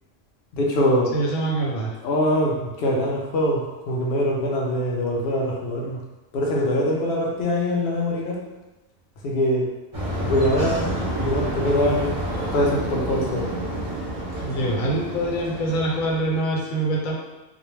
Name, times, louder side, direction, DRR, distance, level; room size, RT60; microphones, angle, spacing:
voice 1, 0.5-1.1 2.0-6.0 6.3-8.4 9.2-9.7 10.2-10.9 11.2-13.5, left 1 dB, 60° left, -2 dB, 0.6 m, -23 dB
voice 2, 1.1-1.9 14.4-17.1, right 1 dB, 85° left, -2 dB, 1.0 m, -24 dB
sound 1, 9.9-16.4, equal, 35° right, 0.6 m, -29 dB
2.3 x 2.1 x 3.1 m, 1.1 s
omnidirectional pair, 1.4 m